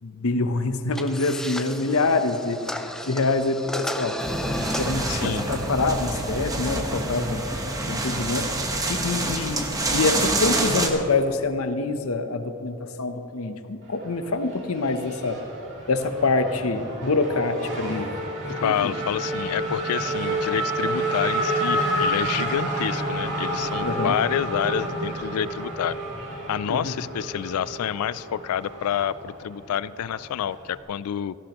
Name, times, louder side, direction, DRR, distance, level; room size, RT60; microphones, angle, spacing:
voice 1, 0.0-4.2 4.8-7.4 7.9-8.6 8.9-15.4 15.9-18.1 18.5-18.9 23.8-24.2 26.7-26.9, left 3 dB, 75° left, 9 dB, 0.8 m, -26 dB
sound 1, 0.9-8.0, equal, ahead, 0.5 m, -35 dB
sound 2, 4.2-10.9, right 2 dB, 15° right, 1.0 m, -27 dB
voice 2, 5.1-5.5 9.4-9.5 18.6-26.0 26.5-31.4, left 9 dB, 90° left, 19 dB, 0.3 m, -28 dB
Race car auto racing / Accelerating revving vroom, 13.8-30.8, right 1 dB, 55° right, 2.7 m, -30 dB
16.5 x 15.0 x 3.0 m, 2.8 s
head